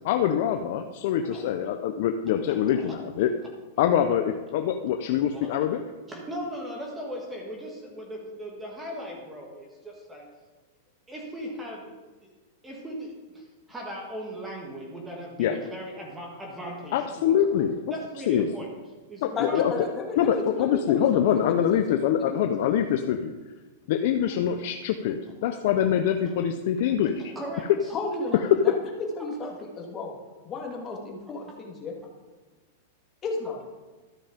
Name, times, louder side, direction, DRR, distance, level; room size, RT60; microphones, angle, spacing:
voice 1, 0.0-3.3 3.8-5.8 15.4-15.5 16.9-17.8 18.3-18.5 19.2-19.7 20.2-23.4 23.9-27.2 28.3-28.4, left 9 dB, 60° left, 6 dB, 0.6 m, -24 dB
voice 2, 2.5-3.0 5.3-5.5 6.1-10.3 11.1-12.3 12.6-17.6 17.9-18.7 19.1-19.7 24.3-24.4 25.3-25.4 26.2-26.3 27.4-28.0 29.4-29.5, equal, 10° right, -1 dB, 1.7 m, -38 dB
voice 3, 19.4-21.1 21.5-22.5 27.9-28.5 29.2-30.1 30.4-31.9 33.2-33.6, left 3 dB, 25° left, 0 dB, 2.0 m, -33 dB
13.0 x 5.4 x 5.2 m, 1.2 s
supercardioid pair, 145°, 0 cm